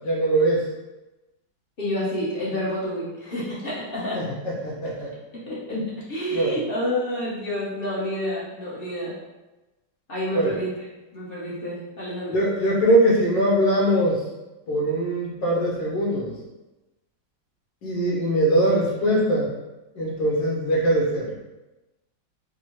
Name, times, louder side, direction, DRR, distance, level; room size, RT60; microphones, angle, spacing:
voice 1, 0.0-0.6 4.1-5.1 5.7-5.9 6.3-6.6 10.3-10.5 12.3-14.2 14.7-16.3 17.8-19.5 19.9-21.3, right 1 dB, 75° left, -3 dB, 1.6 m, -22 dB
voice 2, 1.8-4.2 5.5-5.6 6.1-9.1 10.1-10.7 11.1-12.4, equal, 40° left, -7 dB, 0.9 m, -29 dB
4.6 x 2.1 x 3.0 m, 1.1 s
omnidirectional pair, 2.0 m